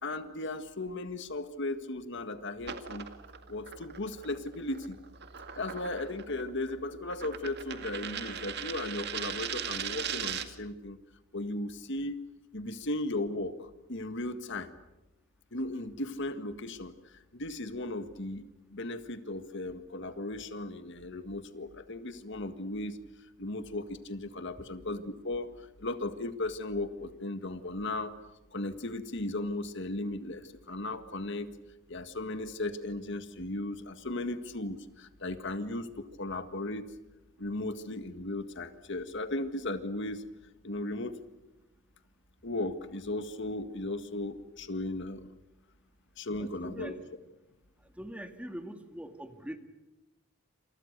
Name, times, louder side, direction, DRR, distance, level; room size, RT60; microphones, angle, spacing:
voice 1, 0.0-3.1 3.5-4.9 5.5-11.0 11.3-12.2 12.5-13.5 13.9-14.7 15.5-16.9 17.3-23.0 23.4-25.5 25.8-28.1 28.5-31.5 31.9-35.9 36.2-36.8 37.4-40.2 40.6-41.1 42.4-45.3 46.2-46.9, left 2 dB, 60° left, 9 dB, 1.8 m, -36 dB
sound 1, 2.6-10.7, right 8 dB, 55° right, 2.0 m, -39 dB
voice 2, 46.3-47.0 47.8-49.6, equal, 5° right, 7 dB, 2.0 m, -43 dB
28.5 x 27.5 x 6.8 m, 1.0 s
head